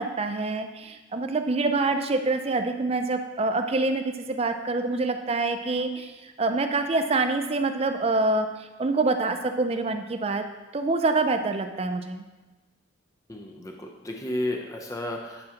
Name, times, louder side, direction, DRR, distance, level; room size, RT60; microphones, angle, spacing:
voice 1, 0.0-10.4 10.7-12.2, right 3 dB, 30° right, 7 dB, 0.4 m, -26 dB
voice 2, 13.3-15.5, left 1 dB, 15° left, 1 dB, 0.7 m, -32 dB
9.7 x 6.3 x 2.9 m, 1.2 s
head